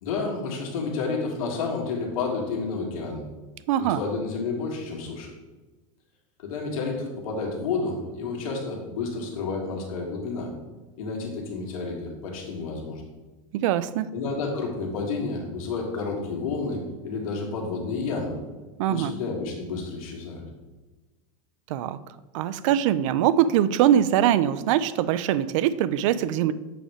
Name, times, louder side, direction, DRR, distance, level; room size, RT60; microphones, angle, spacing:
voice 1, 0.0-3.2 3.8-5.3 6.4-10.5 11.0-13.0 14.1-18.4 18.9-20.4, left 4 dB, 90° left, 0 dB, 1.9 m, -30 dB
voice 2, 3.7-4.0 13.5-14.1 18.8-19.1 21.7-22.0 22.3-26.5, right 11 dB, 65° right, 15 dB, 0.4 m, -22 dB
7.7 x 3.3 x 4.9 m, 1.2 s
supercardioid pair, 150°, 17 cm